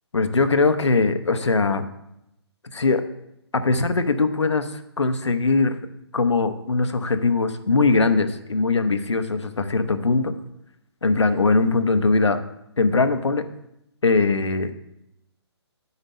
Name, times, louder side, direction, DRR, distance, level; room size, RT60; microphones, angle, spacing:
voice 1, 0.1-1.8 2.8-3.0 3.5-5.7 6.1-10.3 11.0-12.4 12.8-13.4 14.0-14.8, left 3 dB, 90° left, 9 dB, 0.8 m, -21 dB
8.1 x 5.2 x 5.3 m, 0.83 s
figure-of-eight pair, 145°, 14 cm